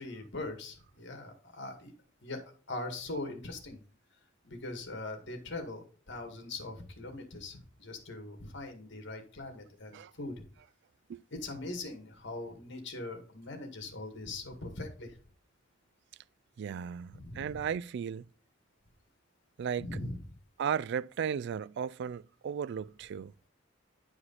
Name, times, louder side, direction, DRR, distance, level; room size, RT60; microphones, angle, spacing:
voice 1, 0.0-1.9 2.2-2.4 2.7-3.8 4.4-10.3 11.3-15.2 17.1-17.6 19.8-20.2, left 2 dB, 65° left, 2.1 m, -41 dB
voice 2, 16.6-18.3 19.6-19.9 20.6-23.3, right 7 dB, 60° right, 0.3 m, -35 dB
10.0 x 4.9 x 4.1 m
head